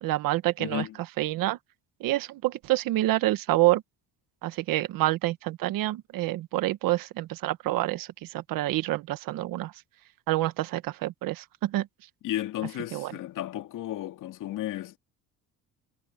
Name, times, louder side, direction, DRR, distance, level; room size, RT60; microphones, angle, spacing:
voice 1, 0.0-0.8 1.2-1.6 2.0-3.8 4.4-9.7 10.3-11.9 12.9-13.1, right 17 dB, 70° right, 1.5 m, -27 dB
voice 2, 0.6-1.0 12.2-15.0, left 13 dB, 65° left, 2.4 m, -33 dB
cardioid pair, 130°, 35 cm